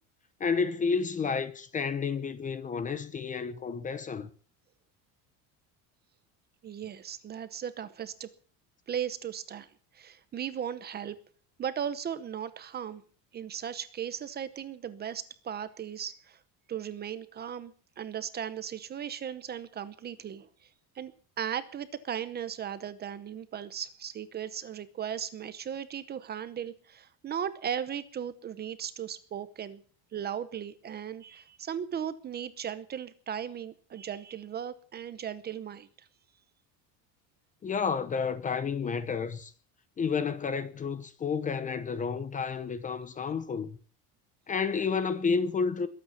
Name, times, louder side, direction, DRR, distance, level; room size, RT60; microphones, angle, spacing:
voice 1, 0.4-4.3 37.6-39.5 40.0-43.8 44.5-45.9, left 5 dB, 20° left, 0.8 m, -30 dB
voice 2, 6.6-8.3 8.9-9.7 9.9-11.2 11.6-13.0 13.3-16.4 16.7-20.5 21.0-21.1 21.4-29.8 30.1-36.1, right 9 dB, 25° right, 0.8 m, -37 dB
22.0 x 8.7 x 7.1 m
cardioid pair, 180°, 39 cm